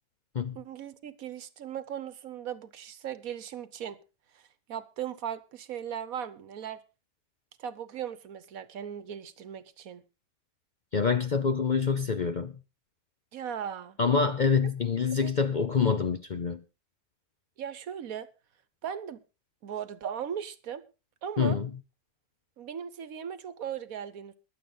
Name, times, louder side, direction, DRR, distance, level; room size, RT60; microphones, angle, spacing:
voice 1, 0.5-4.0 4.3-4.4 4.7-6.8 7.6-10.0 13.3-14.0 15.2-15.3 17.6-18.3 18.8-19.2 19.6-20.8 21.2-21.6 22.6-24.3, right 8 dB, 70° right, 1.4 m, -38 dB
voice 2, 10.9-12.6 14.0-16.6 21.4-21.7, left 5 dB, 45° left, 0.6 m, -26 dB
22.5 x 7.8 x 3.9 m
omnidirectional pair, 1.5 m